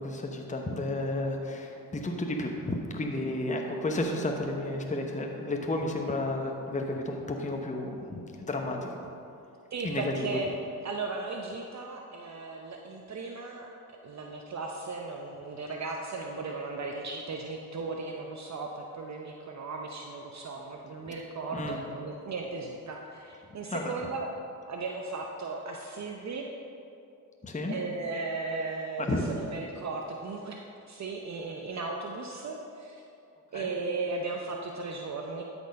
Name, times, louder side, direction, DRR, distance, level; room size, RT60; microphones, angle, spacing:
voice 1, 0.0-9.0 9.8-10.4 21.5-21.8 23.7-23.9 27.4-27.8 29.0-29.2 33.5-33.7, left 2 dB, 20° left, 2 dB, 1.0 m, -32 dB
voice 2, 9.7-10.5 10.8-13.7 14.0-24.3 24.7-26.5 27.7-33.0 33.5-35.4, right 3 dB, 45° right, 1 dB, 0.8 m, -36 dB
12.0 x 4.5 x 5.2 m, 2.7 s
supercardioid pair, 60°, 38 cm